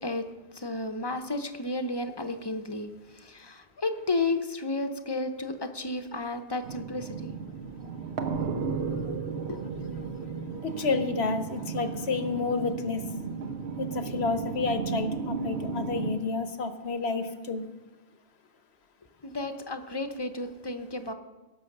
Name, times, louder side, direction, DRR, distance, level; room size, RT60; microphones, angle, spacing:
voice 1, 0.5-7.1 9.0-9.2 9.5-9.9 19.2-21.1, left 2 dB, 25° left, 8 dB, 0.7 m, -32 dB
sound 1, 6.6-16.1, right 5 dB, 85° right, 1.2 m, -34 dB
voice 2, 10.6-13.0 13.8-17.7, left 4 dB, 75° left, 9 dB, 1.2 m, -30 dB
16.5 x 6.4 x 6.6 m, 1.2 s
omnidirectional pair, 1.1 m